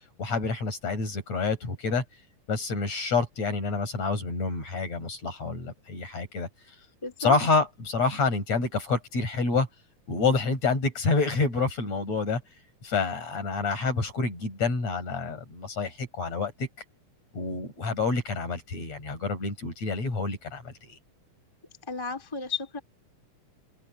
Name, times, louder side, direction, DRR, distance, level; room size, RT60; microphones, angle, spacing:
voice 1, 0.2-2.0 2.5-6.5 7.2-9.7 10.1-12.4 12.8-16.7 17.3-20.9, left 4 dB, 55° left, 7.0 m, -28 dB
voice 2, 7.0-7.4 21.9-22.8, left 4 dB, 10° left, 2.5 m, -33 dB
open air
omnidirectional pair, 3.7 m